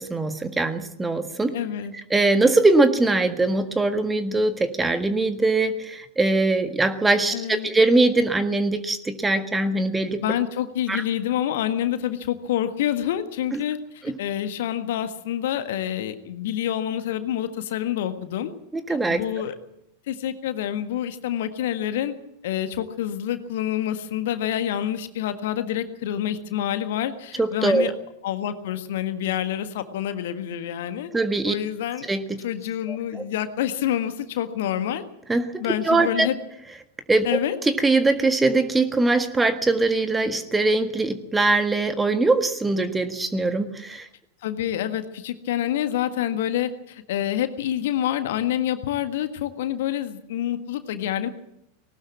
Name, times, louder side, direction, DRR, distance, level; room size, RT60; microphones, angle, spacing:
voice 1, 0.0-1.5 2.1-10.2 10.9-11.0 13.5-13.6 14.0-14.1 18.7-19.2 27.4-27.9 31.1-31.5 32.1-32.4 32.9-33.2 35.3-36.3 37.1-44.1, right 2 dB, 10° right, 9 dB, 1.6 m, -22 dB
voice 2, 1.5-1.9 7.3-7.7 10.2-18.5 19.1-19.5 20.1-22.1 22.4-27.9 28.2-31.1 31.5-32.1 32.4-35.0 35.6-36.3 37.2-37.5 44.4-51.3, left 11 dB, 55° left, 9 dB, 1.6 m, -27 dB
19.5 x 19.0 x 7.4 m, 0.78 s
figure-of-eight pair, 90°, 0 cm